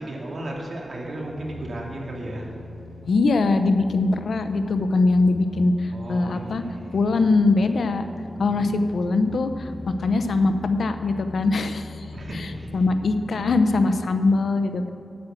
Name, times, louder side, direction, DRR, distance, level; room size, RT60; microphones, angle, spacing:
voice 1, 0.0-2.5 5.9-7.0 8.4-8.8 12.1-12.8, right 1 dB, 60° right, -1 dB, 2.2 m, -35 dB
sound 1, 1.2-14.0, left 2 dB, 40° left, 1.9 m, -40 dB
voice 2, 3.1-6.6 6.9-8.0 8.4-9.7 10.0-11.9 12.7-14.9, left 3 dB, 80° left, 9 dB, 0.7 m, -21 dB
9.5 x 8.8 x 7.7 m, 2.7 s
wide cardioid pair, 100°, 0 cm